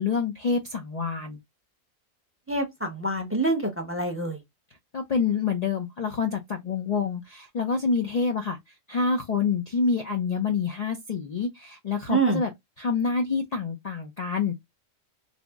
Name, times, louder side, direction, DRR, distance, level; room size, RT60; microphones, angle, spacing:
voice 1, 0.0-1.4 4.9-8.6 8.9-12.5 12.8-14.6, left 5 dB, 75° left, 0.3 m, -27 dB
voice 2, 2.5-4.4 12.1-12.4, right 3 dB, 15° right, 0.6 m, -26 dB
3.4 x 2.0 x 3.4 m
omnidirectional pair, 1.3 m